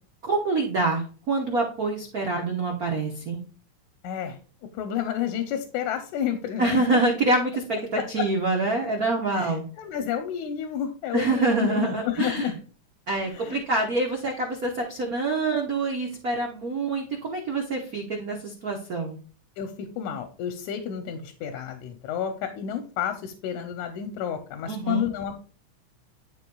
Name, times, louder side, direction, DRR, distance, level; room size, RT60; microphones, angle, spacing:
voice 1, 0.2-3.4 6.6-9.6 11.1-12.5 13.1-19.2 24.7-25.0, right 3 dB, 75° right, 1 dB, 0.8 m, -26 dB
voice 2, 4.0-4.4 4.8-7.0 8.2-8.3 9.3-12.6 13.3-13.6 19.6-25.3, left 9 dB, 90° left, 7 dB, 2.1 m, -30 dB
11.0 x 5.1 x 2.3 m, 0.40 s
omnidirectional pair, 3.3 m